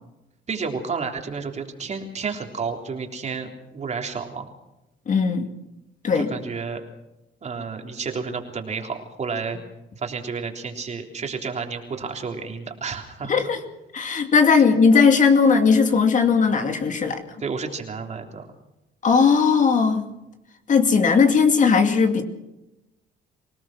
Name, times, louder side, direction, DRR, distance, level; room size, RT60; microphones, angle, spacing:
voice 1, 0.5-4.5 6.1-6.8 7.4-9.6 10.0-13.5 17.4-18.5, right 5 dB, 35° right, 3 dB, 3.5 m, -31 dB
voice 2, 5.1-5.5 6.0-6.3 13.3-13.6 13.9-17.2 19.0-20.1 20.7-22.2, left 5 dB, 40° left, 6 dB, 2.4 m, -18 dB
25.5 x 18.0 x 6.1 m, 0.91 s
cardioid pair, 125°, 20 cm